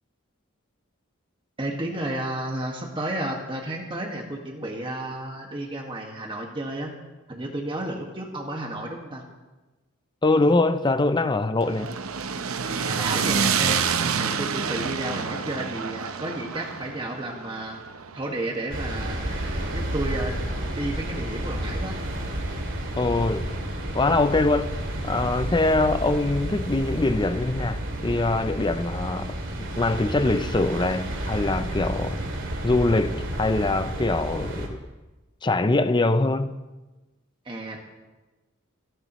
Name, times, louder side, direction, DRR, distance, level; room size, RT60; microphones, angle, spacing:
voice 1, 1.6-6.9 7.3-9.2 12.6-17.8 18.1-20.4 20.7-22.0 37.4-37.8, right 1 dB, 25° right, 1.7 m, -32 dB
voice 2, 10.2-11.9 23.0-23.5 23.9-32.2 32.6-34.8 35.4-36.5, left 2 dB, 20° left, 0.5 m, -23 dB
sound 1, 11.6-19.8, right 6 dB, 85° right, 0.8 m, -28 dB
sound 2, 18.7-34.7, right 1 dB, 60° right, 2.6 m, -31 dB
30.0 x 11.0 x 3.1 m
head